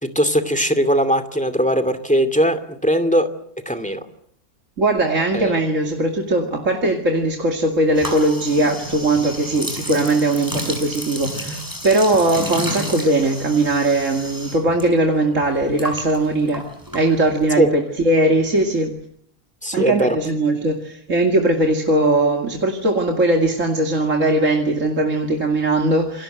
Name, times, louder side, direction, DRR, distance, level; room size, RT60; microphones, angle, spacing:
voice 1, 0.0-3.3 3.7-4.0 5.3-5.6 17.6-17.7 19.6-20.2, equal, 5° left, 11 dB, 2.4 m, -19 dB
voice 2, 4.8-16.6 16.9-19.0 19.7-26.2, right 2 dB, 60° right, 2 dB, 2.8 m, -19 dB
sound 1, 7.9-14.8 15.1-17.5, equal, 15° right, 7.5 m, -31 dB
28.5 x 23.5 x 7.9 m, 0.68 s
omnidirectional pair, 1.5 m